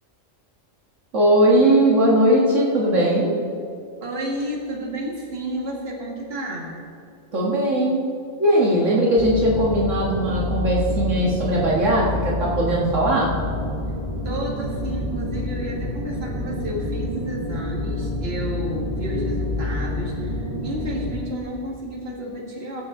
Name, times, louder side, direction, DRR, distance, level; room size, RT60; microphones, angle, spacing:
voice 1, 1.1-3.3 7.3-8.0 8.4-13.3, right 1 dB, 70° right, -5 dB, 2.0 m, -19 dB
voice 2, 4.0-6.7 14.2-22.8, equal, 50° right, -3 dB, 2.1 m, -31 dB
sound 1, 9.2-21.1, left 1 dB, 55° left, 2.7 m, -28 dB
19.0 x 7.8 x 3.7 m, 2.5 s
omnidirectional pair, 1.3 m